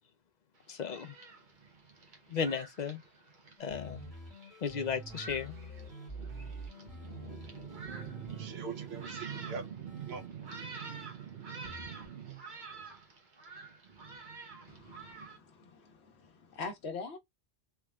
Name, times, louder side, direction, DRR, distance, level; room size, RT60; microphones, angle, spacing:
Thunderstorm, 0.6-15.4, right 4 dB, 50° right, 1.1 m, -49 dB
voice 1, 0.7-1.1 2.3-3.0 3.6-4.0 4.6-5.5, left 6 dB, 50° left, 0.6 m, -34 dB
sound 1, 3.6-11.1 11.6-12.1, right 2 dB, 5° left, 1.9 m, -47 dB
voice 2, 7.7-12.4, right 7 dB, 80° right, 1.0 m, -43 dB
voice 3, 14.7-17.2, left 4 dB, 80° left, 1.1 m, -44 dB
3.4 x 3.1 x 2.3 m
omnidirectional pair, 1.1 m